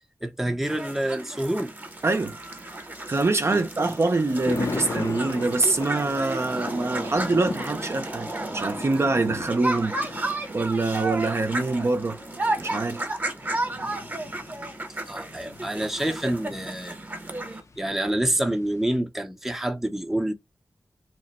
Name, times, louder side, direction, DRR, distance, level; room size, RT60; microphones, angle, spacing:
voice 1, 0.2-1.7 3.5-3.9 15.1-17.0 17.8-20.3, right 1 dB, 5° right, 0.6 m, -27 dB
sound 1, 0.6-17.6, right 2 dB, 25° right, 0.9 m, -33 dB
Thunder, 1.9-19.0, left 3 dB, 50° left, 0.6 m, -39 dB
voice 2, 2.0-2.4 3.1-12.2 12.6-13.0, right 3 dB, 45° right, 0.5 m, -25 dB
2.9 x 2.1 x 4.1 m
wide cardioid pair, 85°, 6 cm